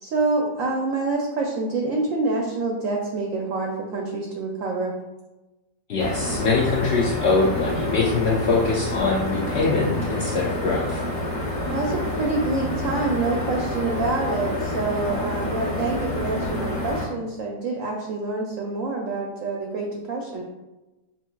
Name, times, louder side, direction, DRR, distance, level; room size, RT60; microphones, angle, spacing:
voice 1, 0.0-5.0 11.7-20.4, right 3 dB, 70° right, 0 dB, 0.8 m, -26 dB
voice 2, 5.9-11.0, left 3 dB, 85° left, -4 dB, 0.5 m, -23 dB
sound 1, 6.0-17.1, left 1 dB, 20° left, 0.8 m, -28 dB
4.4 x 2.8 x 2.2 m, 1.1 s
omnidirectional pair, 1.7 m